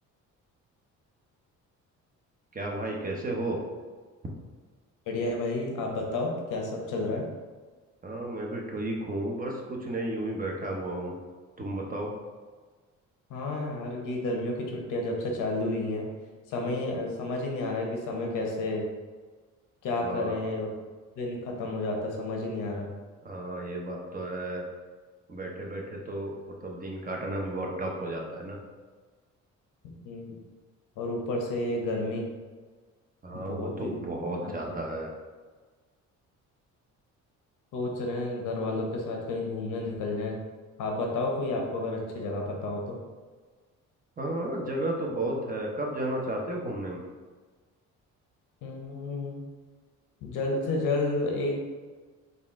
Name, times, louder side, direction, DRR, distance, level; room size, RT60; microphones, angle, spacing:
voice 1, 2.5-3.6 8.0-11.1 11.6-12.1 20.0-20.4 23.2-24.7 25.3-26.3 26.6-28.6 33.2-35.1 44.2-47.0, right 1 dB, 30° right, 0 dB, 0.8 m, -33 dB
voice 2, 5.1-7.2 13.3-16.1 16.5-18.8 19.8-20.7 21.2-22.9 29.8-30.3 31.0-32.3 33.3-33.9 34.4-34.5 37.7-40.4 40.8-43.0 48.6-49.4 50.2-51.6, left 2 dB, 90° left, 0 dB, 0.8 m, -31 dB
4.0 x 2.5 x 3.6 m, 1.4 s
cardioid pair, 90°, 30 cm